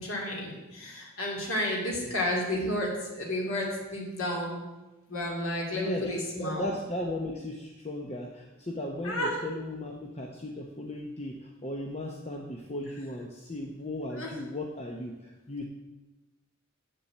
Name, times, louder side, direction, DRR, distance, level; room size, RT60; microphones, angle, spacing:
voice 1, 0.0-4.6 5.1-6.7 9.0-9.4 14.1-14.3, left 1 dB, 70° left, -2 dB, 2.9 m, -31 dB
voice 2, 5.7-15.6, left 1 dB, 30° left, 1 dB, 0.8 m, -36 dB
7.2 x 7.1 x 8.1 m, 1.1 s
head